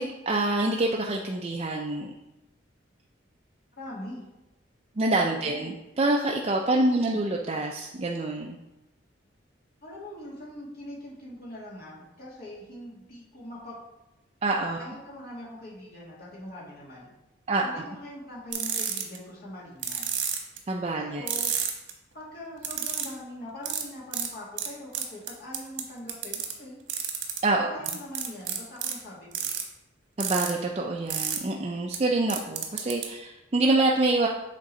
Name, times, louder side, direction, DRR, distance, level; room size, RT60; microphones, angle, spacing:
voice 1, 0.0-2.1 5.0-8.6 14.4-14.8 17.5-17.8 20.7-21.2 27.4-27.7 30.2-34.3, right 2 dB, 30° right, -1 dB, 0.4 m, -26 dB
voice 2, 3.8-4.2 5.3-5.7 6.7-7.2 9.8-13.8 14.8-17.1 17.6-20.1 21.0-21.5 22.1-26.8 27.4-29.5, left 1 dB, 50° left, -6 dB, 2.2 m, -42 dB
sound 1, 18.5-19.2 19.8-20.6 21.3-21.9 22.6-23.1 23.6-23.8 24.1-24.3 24.6-24.7 24.9-25.8 26.1-26.5 26.9-27.4 27.8-28.9 29.3-29.6 30.2-30.5 31.1-31.4 31.9-32.0 32.3-33.0, right 8 dB, 85° right, 1.1 m, -29 dB
7.6 x 3.7 x 4.2 m, 0.98 s
head